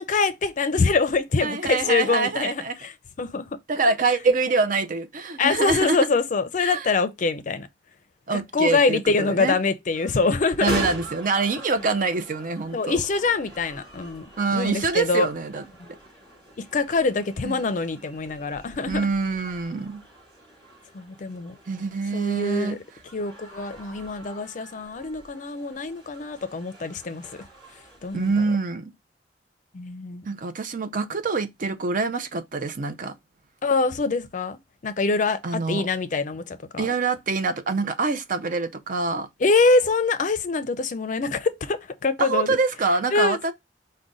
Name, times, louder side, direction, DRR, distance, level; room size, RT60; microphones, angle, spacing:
voice 1, 0.0-2.9 3.2-3.4 5.4-7.7 8.3-10.7 12.7-14.3 14.5-15.3 15.8-15.9 16.7-19.1 20.9-21.6 22.1-22.8 23.1-27.3 28.0-28.3 29.7-30.3 33.6-34.6 34.8-36.9 39.4-42.6 43.1-43.5, left 4 dB, 45° left, 0.5 m, -24 dB
voice 2, 1.4-2.8 3.7-6.0 6.6-6.9 8.3-9.6 10.6-13.0 14.4-15.6 17.4-17.6 18.9-20.0 21.7-22.8 28.1-28.9 30.3-33.1 35.4-35.8 36.8-39.3 42.2-43.5, right 4 dB, 50° right, 0.5 m, -25 dB
sound 1, 9.9-28.4, left 1 dB, 25° right, 3.1 m, -41 dB
4.8 x 2.2 x 3.9 m
head